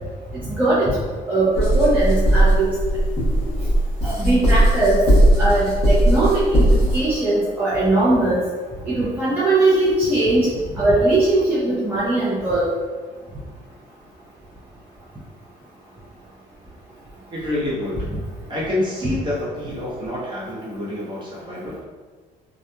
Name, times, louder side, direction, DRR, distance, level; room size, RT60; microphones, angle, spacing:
voice 1, 0.4-0.9 1.3-2.8 4.0-5.0 5.4-8.4 8.8-12.7, right 2 dB, 10° right, -10 dB, 0.6 m, -20 dB
sound 1, 1.5-7.0, right 1 dB, 35° left, 1.1 m, -18 dB
voice 2, 17.3-18.1 18.5-21.8, left 1 dB, 30° right, -8 dB, 1.1 m, -27 dB
2.8 x 2.3 x 2.2 m, 1.4 s
cardioid pair, 110°, 17 cm